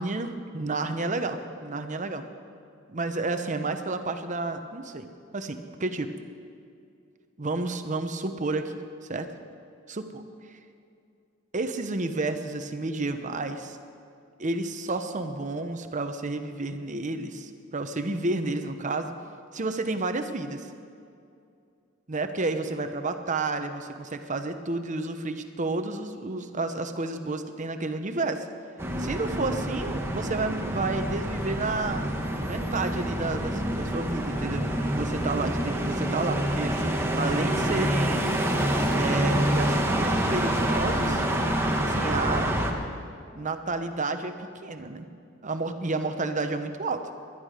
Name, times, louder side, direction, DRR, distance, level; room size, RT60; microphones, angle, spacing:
voice 1, 0.0-2.2 2.9-5.1 5.3-6.1 7.4-8.8 9.1-9.3 9.9-10.2 11.5-13.8 14.4-19.1 19.5-20.7 22.1-28.5 29.0-32.1 32.4-34.7 34.9-38.3 38.9-41.2 41.8-42.6 43.3-45.1 45.4-47.1, right 3 dB, 40° right, 8 dB, 0.9 m, -31 dB
sound 1, 28.8-42.7, right 1 dB, 10° right, 1.3 m, -27 dB
20.0 x 11.0 x 5.0 m, 2.4 s
head